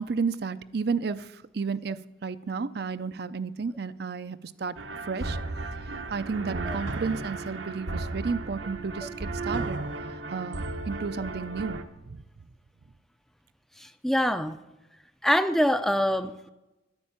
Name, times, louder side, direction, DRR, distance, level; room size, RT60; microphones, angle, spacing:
voice 1, 0.0-4.8 5.0-5.4 6.1-9.8 10.3-12.2, right 5 dB, 55° right, 13 dB, 0.5 m, -32 dB
sound 1, 4.8-11.8, right 2 dB, 80° right, 1.1 m, -34 dB
voice 2, 14.0-14.6 15.2-16.5, equal, ahead, 10 dB, 0.4 m, -24 dB
11.0 x 9.8 x 8.7 m, 1.0 s
head